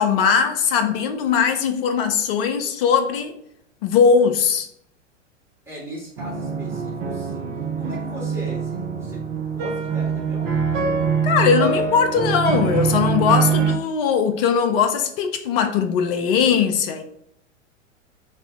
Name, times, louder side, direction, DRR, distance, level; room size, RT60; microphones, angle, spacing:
voice 1, 0.0-3.4 3.8-4.7 11.2-17.0, left 6 dB, 50° left, 0.6 m, -20 dB
voice 2, 5.6-7.5 7.8-10.5, equal, 5° right, 1.5 m, -38 dB
sound 1, 6.2-13.7, right 6 dB, 40° right, 0.8 m, -24 dB
3.3 x 2.6 x 4.5 m
figure-of-eight pair, 100°, 38 cm